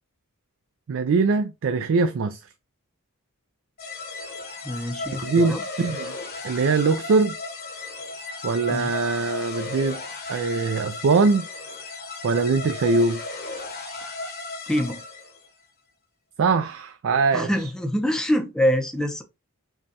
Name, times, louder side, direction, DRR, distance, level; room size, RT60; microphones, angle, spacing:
voice 1, 0.9-2.4 5.2-6.1 6.4-7.3 8.4-10.0 10.3-11.5 12.2-13.2 16.4-17.5, right 4 dB, 60° right, 0.4 m, -22 dB
sound 1, 3.8-15.5, left 3 dB, 45° left, 1.0 m, -35 dB
voice 2, 4.6-5.6 8.7-8.9 14.7-15.0 17.3-19.2, equal, 5° left, 0.6 m, -25 dB
5.2 x 2.3 x 2.8 m
head